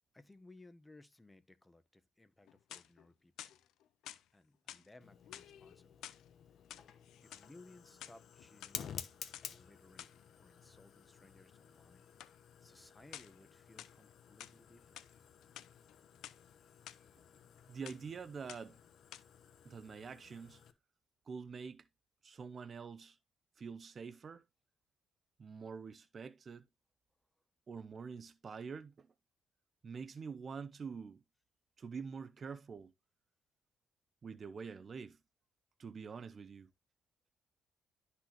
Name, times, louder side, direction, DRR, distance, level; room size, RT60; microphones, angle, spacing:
voice 1, 0.1-3.5 4.3-6.1 7.2-9.0 9.5-12.0 12.6-15.0, left 2 dB, 15° left, 0.9 m, -61 dB
sound 1, 2.4-3.1 3.4-4.2 4.7-4.9 5.3-6.2 6.6-7.5 7.9-8.7 9.3-9.5 10.0-10.2 12.2-12.4 13.1-13.4 13.8-14.6 15.0-15.1 15.4-16.4 16.9-17.0 17.4-17.6 17.9-18.1 18.5-18.8 19.1-19.2, left 12 dB, 85° left, 0.5 m, -51 dB
Fire, 5.0-20.7, left 8 dB, 65° left, 0.9 m, -53 dB
voice 2, 17.7-18.8 19.6-20.6 21.3-21.9 22.2-23.2 23.6-24.4 25.4-26.7 27.7-29.1 29.8-31.2 31.8-32.9 34.2-35.2 35.8-36.7, right 5 dB, 45° right, 0.5 m, -46 dB
12.0 x 4.1 x 2.9 m
cardioid pair, 90°, 0 cm